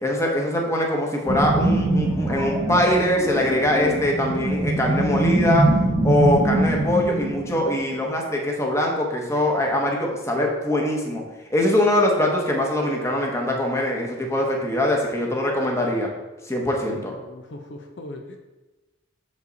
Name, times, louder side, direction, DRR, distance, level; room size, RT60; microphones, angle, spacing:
voice 1, 0.0-5.7 6.0-11.2 11.5-16.1 16.5-17.1, left 1 dB, 15° left, 0 dB, 1.1 m, -22 dB
sound 1, 1.3-8.0, right 2 dB, 15° right, 1.0 m, -23 dB
voice 2, 16.9-18.4, left 1 dB, 65° left, 3 dB, 0.8 m, -40 dB
6.5 x 5.3 x 4.0 m, 1.1 s
head